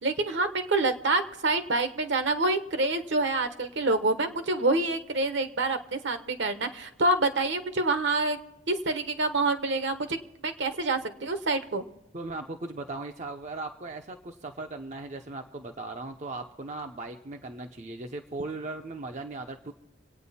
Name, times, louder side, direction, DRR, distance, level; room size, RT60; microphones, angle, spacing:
voice 1, 0.0-8.4 8.7-10.2 10.4-11.8, right 2 dB, 60° right, 9 dB, 1.0 m, -27 dB
voice 2, 12.1-19.7, right 2 dB, 35° right, 4 dB, 0.6 m, -38 dB
26.5 x 9.0 x 4.2 m, 0.90 s
head